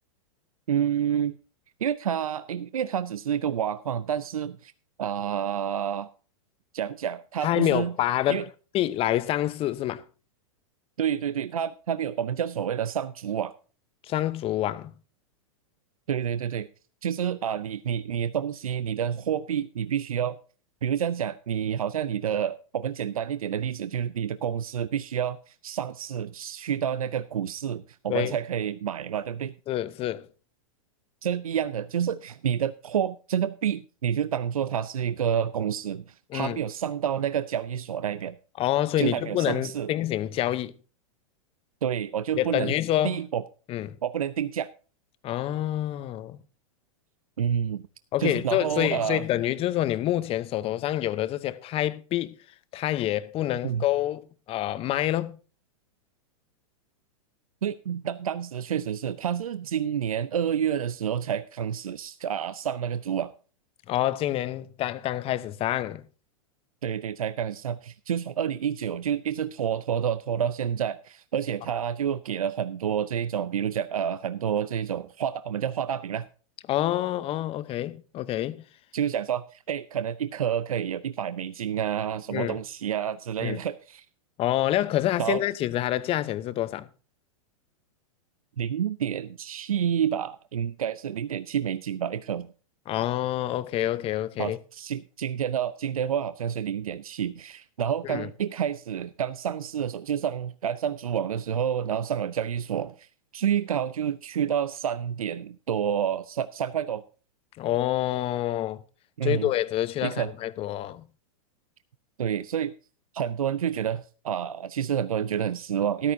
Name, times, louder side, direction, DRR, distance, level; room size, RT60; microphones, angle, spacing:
voice 1, 0.7-1.4 1.8-4.7 5.0-6.1 6.7-7.9 8.3-8.5 11.0-13.5 16.1-16.7 17.0-20.4 20.8-29.5 31.2-38.4 39.0-39.9 41.8-42.7 43.0-43.4 44.0-44.7 47.4-47.8 48.2-49.2 53.6-53.8 57.6-63.3 66.8-76.3 78.9-84.1 85.2-85.4 88.6-92.5 94.4-103.1 103.3-107.0 109.2-109.5 110.0-110.3 112.2-112.7 113.1-116.1, right 9 dB, 85° right, 0.6 m, -29 dB
voice 2, 7.4-8.5 8.7-10.0 14.1-14.9 28.1-28.4 29.7-30.3 36.3-36.6 38.6-40.7 42.4-43.2 43.7-44.0 45.2-46.4 48.1-52.3 52.7-55.4 63.9-66.0 76.7-78.6 82.3-82.6 83.4-83.6 84.4-86.9 92.9-94.6 98.0-98.3 107.6-108.8 109.2-111.0, left 13 dB, 35° left, 0.9 m, -27 dB
13.5 x 13.0 x 2.7 m
hypercardioid pair, 115°, 18 cm